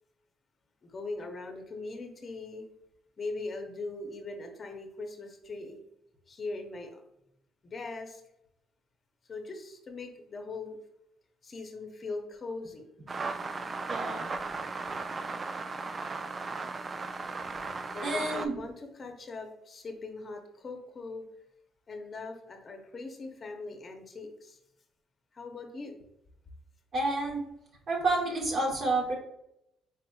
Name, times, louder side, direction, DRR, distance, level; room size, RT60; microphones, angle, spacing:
voice 1, 0.8-2.7 3.2-5.8 6.3-7.0 7.6-8.2 9.3-10.8 11.4-12.9 17.9-21.3 21.9-24.6 25.3-26.0, left 3 dB, 40° left, 4 dB, 0.7 m, -40 dB
sound 1, 13.1-18.5, right 3 dB, 35° right, 0.3 m, -36 dB
voice 2, 13.9-14.3 17.6-17.7 18.0-18.6 26.9-27.4 27.9-29.1, right 2 dB, 50° right, -2 dB, 1.0 m, -29 dB
4.1 x 3.6 x 2.2 m, 0.81 s
cardioid pair, 90°, 0 cm